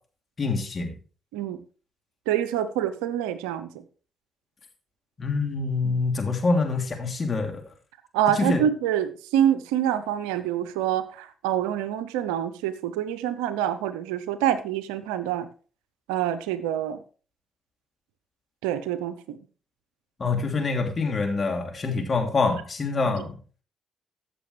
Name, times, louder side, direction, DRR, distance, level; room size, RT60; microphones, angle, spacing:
voice 1, 0.4-0.9 5.2-7.6 8.4-8.6 20.2-23.3, left 3 dB, 45° left, 3 dB, 2.9 m, -25 dB
voice 2, 2.3-3.7 5.8-6.0 8.1-15.5 16.1-17.0 18.6-19.4 23.1-23.2, right 10 dB, 85° right, 13 dB, 0.7 m, -26 dB
14.5 x 6.8 x 3.3 m, 0.38 s
hypercardioid pair, 50°, 0 cm